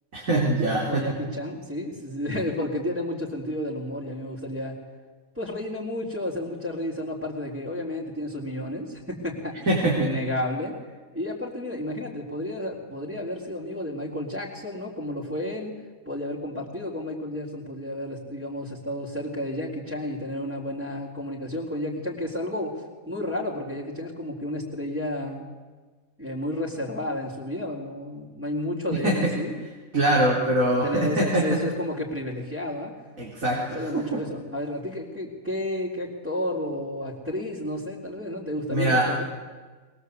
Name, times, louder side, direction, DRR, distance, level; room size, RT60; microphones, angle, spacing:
voice 1, 0.1-1.0 9.7-10.1 28.9-29.1 29.9-31.4 33.2-34.2 38.7-39.1, right 1 dB, 80° right, -4 dB, 4.5 m, -23 dB
voice 2, 0.9-4.8 5.3-10.8 11.1-15.7 16.1-25.5 26.2-29.5 30.6-32.9 33.5-39.2, left 1 dB, 10° right, -7 dB, 3.9 m, -31 dB
22.0 x 21.5 x 8.3 m, 1.3 s
omnidirectional pair, 1.4 m